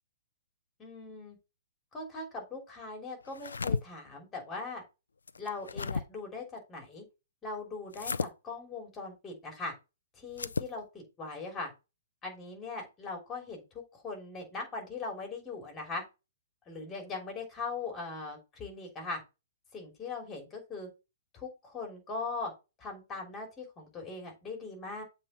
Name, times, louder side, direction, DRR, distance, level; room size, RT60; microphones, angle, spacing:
voice 1, 0.8-1.4 1.9-4.8 5.4-7.0 7.4-9.7 10.2-11.7 12.2-16.0 16.7-19.2 19.7-20.9 21.3-22.5 22.8-25.0, left 3 dB, 20° left, 2 dB, 3.1 m, -40 dB
sound 1, 3.3-3.8 5.3-6.0 7.9-8.3 10.3-10.7, left 4 dB, 75° left, 0.4 m, -33 dB
7.5 x 3.5 x 5.4 m, 0.28 s
figure-of-eight pair, 120°, 0 cm